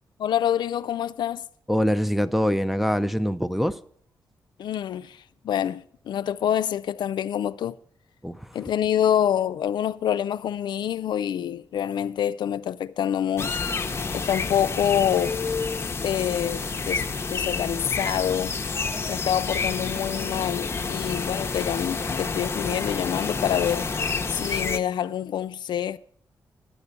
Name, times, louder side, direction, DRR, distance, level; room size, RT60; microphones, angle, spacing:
voice 1, 0.2-1.5 4.6-7.8 8.5-13.6 14.1-15.4 16.0-17.0 17.3-18.6 19.0-23.9 24.3-26.0, left 10 dB, 75° left, 0.4 m, -26 dB
voice 2, 1.7-3.8 8.2-8.6, equal, ahead, 0.4 m, -24 dB
sound 1, 13.4-24.8, left 4 dB, 35° left, 0.7 m, -29 dB
10.0 x 6.7 x 8.1 m
cardioid pair, 100°, 8 cm